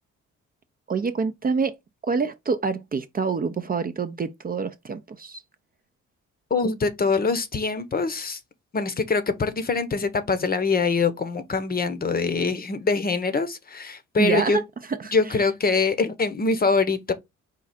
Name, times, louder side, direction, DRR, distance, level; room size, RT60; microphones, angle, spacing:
voice 1, 0.9-1.7 2.0-5.4 14.2-14.6 15.0-15.5, right 5 dB, 30° right, 0.6 m, -26 dB
voice 2, 6.5-8.4 8.7-14.6 15.1-17.1, left 4 dB, 30° left, 0.8 m, -24 dB
4.7 x 2.4 x 4.1 m
cardioid pair, 90°, 30 cm